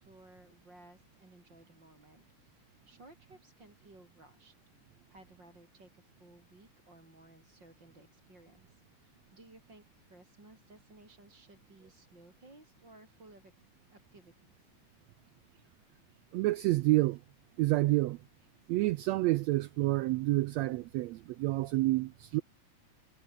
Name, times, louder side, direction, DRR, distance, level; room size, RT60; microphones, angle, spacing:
voice 1, 0.0-4.6 5.1-14.7, right 2 dB, 35° right, 7.4 m, -58 dB
voice 2, 16.3-17.2 17.6-18.2 18.7-22.4, right 18 dB, 85° right, 1.5 m, -28 dB
omnidirectional pair, 3.6 m